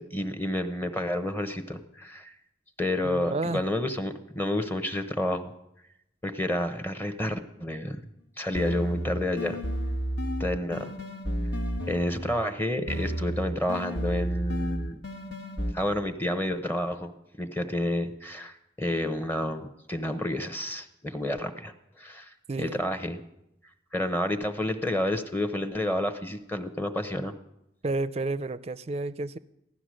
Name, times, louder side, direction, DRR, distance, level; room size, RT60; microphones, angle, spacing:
voice 1, 0.0-2.3 2.8-5.5 6.2-8.0 8.4-9.6 10.4-10.9 11.8-15.0 15.7-17.1 17.4-23.2 23.9-27.3, left 1 dB, 10° left, 8 dB, 0.8 m, -30 dB
voice 2, 3.0-3.6 22.5-22.8 27.8-29.4, right 2 dB, 35° right, 15 dB, 0.4 m, -31 dB
sound 1, 8.5-12.5 12.9-15.7, equal, 65° left, 1.4 m, -32 dB
15.5 x 12.0 x 6.3 m, 0.85 s
head